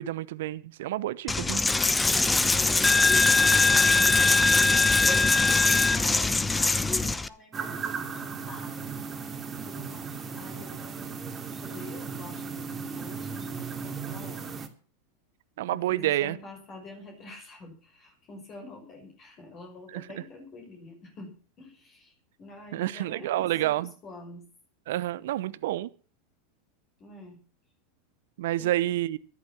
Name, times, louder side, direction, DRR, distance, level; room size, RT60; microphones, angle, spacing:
voice 1, 0.0-1.6 15.6-16.4 19.9-20.2 22.7-23.9 24.9-25.9 28.4-29.2, right 14 dB, 70° right, 0.8 m, -29 dB
Coin (dropping), 1.3-7.3, left 3 dB, 10° left, 0.9 m, -21 dB
voice 2, 2.0-2.9 3.6-8.7 9.5-11.1 11.6-14.5 15.7-21.3 21.6-22.1 22.4-24.4 27.0-27.4 28.6-28.8, left 2 dB, 35° left, 6.0 m, -47 dB
sound 1, 7.5-14.7, right 5 dB, 25° right, 2.5 m, -36 dB
14.0 x 11.5 x 5.9 m
hypercardioid pair, 100°, 0 cm